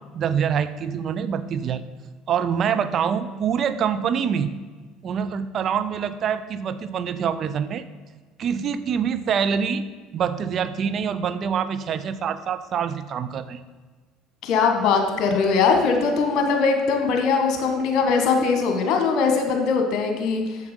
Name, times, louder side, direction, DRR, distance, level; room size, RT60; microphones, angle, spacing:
voice 1, 0.1-1.8 2.3-4.5 5.0-7.8 8.4-9.8 10.1-13.6, right 7 dB, 45° right, 12 dB, 0.5 m, -25 dB
voice 2, 14.4-20.6, left 5 dB, 55° left, 4 dB, 1.6 m, -21 dB
7.8 x 7.2 x 5.3 m, 1.4 s
figure-of-eight pair, 65°, 0 cm